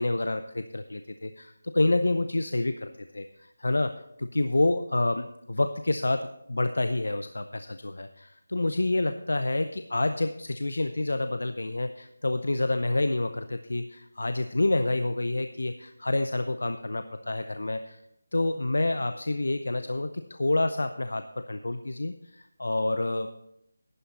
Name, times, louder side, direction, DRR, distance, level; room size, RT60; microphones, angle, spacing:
voice 1, 0.0-18.0 18.3-23.3, left 2 dB, 85° left, 10 dB, 0.6 m, -28 dB
11.0 x 9.9 x 4.2 m, 0.80 s
figure-of-eight pair, 175°, 0 cm